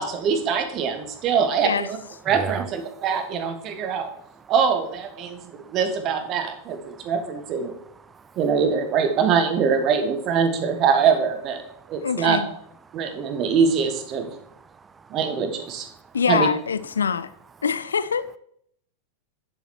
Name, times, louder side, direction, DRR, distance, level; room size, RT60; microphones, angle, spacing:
voice 1, 0.0-2.0 2.2-4.1 4.5-7.7 8.4-11.6 11.9-12.4 12.9-14.3 15.1-15.9 16.3-16.5, right 6 dB, 35° right, 7 dB, 1.7 m, -23 dB
voice 2, 2.3-2.7 3.0-3.1 3.7-4.5 5.2-5.8 6.9-7.1 7.7-8.4 11.7-12.1 12.9-13.4 14.3-15.2 15.9-16.2, right 5 dB, 15° right, 17 dB, 0.5 m, -40 dB
voice 3, 12.0-12.5 16.1-17.3 17.6-18.4, left 6 dB, 70° left, 15 dB, 0.4 m, -24 dB
10.5 x 7.7 x 4.4 m, 0.71 s
figure-of-eight pair, 90°, 0 cm